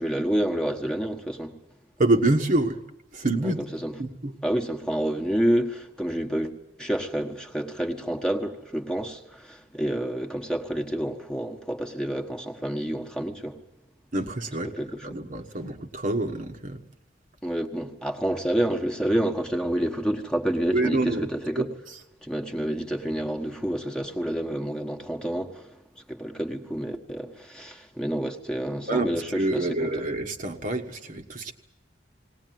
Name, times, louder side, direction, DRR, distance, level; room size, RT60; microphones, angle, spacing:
voice 1, 0.0-1.5 3.4-3.5 3.8-3.9 4.4-6.5 6.8-13.6 14.6-15.2 17.4-21.7 22.2-25.7 26.1-29.9, right 1 dB, 5° left, 1.4 m, -28 dB
voice 2, 2.0-2.8 3.1-3.6 4.0-4.3 14.1-14.7 15.0-16.8 20.7-21.3 21.6-21.7 28.9-31.5, right 2 dB, 50° right, 1.4 m, -26 dB
19.5 x 19.0 x 9.3 m
head